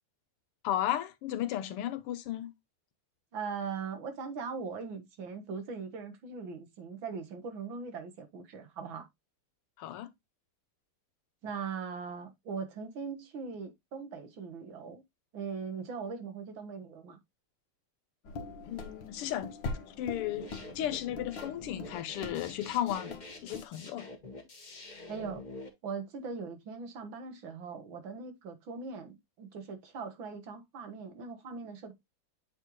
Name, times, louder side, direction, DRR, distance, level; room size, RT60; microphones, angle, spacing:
voice 1, 0.6-2.5 9.8-10.1 18.7-19.6 20.0-20.5 20.8-24.1, left 12 dB, 90° left, 1.7 m, -34 dB
voice 2, 3.3-9.1 11.4-15.0 15.3-17.2 25.1-25.4 25.8-31.9, right 5 dB, 65° right, 2.0 m, -40 dB
sound 1, 18.2-23.6, left 3 dB, 60° left, 1.7 m, -43 dB
sound 2, 20.2-25.7, left 2 dB, 25° left, 1.2 m, -47 dB
8.7 x 4.3 x 3.1 m
omnidirectional pair, 2.4 m